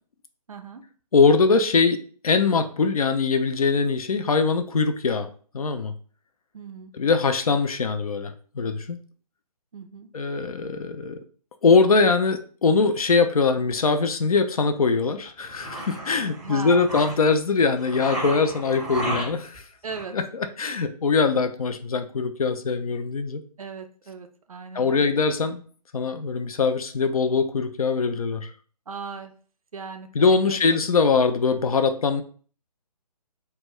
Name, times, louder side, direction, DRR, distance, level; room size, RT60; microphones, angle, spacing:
voice 1, 0.5-0.8 6.5-6.9 9.7-10.1 16.4-17.0 19.8-20.1 23.6-25.2 28.9-29.3 29.7-30.1 30.5-30.8, right 5 dB, 60° right, 6 dB, 0.4 m, -38 dB
voice 2, 1.1-2.0 2.2-5.3 5.5-5.9 6.9-9.0 10.1-11.2 11.6-19.6 20.1-23.4 24.7-25.6 25.9-28.5 30.2-32.2, left 4 dB, 60° left, 8 dB, 0.4 m, -22 dB
sound 1, 15.2-17.3 17.8-19.6 19.9-20.0, right 1 dB, ahead, 0.7 m, -33 dB
2.1 x 2.1 x 3.6 m, 0.43 s
figure-of-eight pair, 140°, 20 cm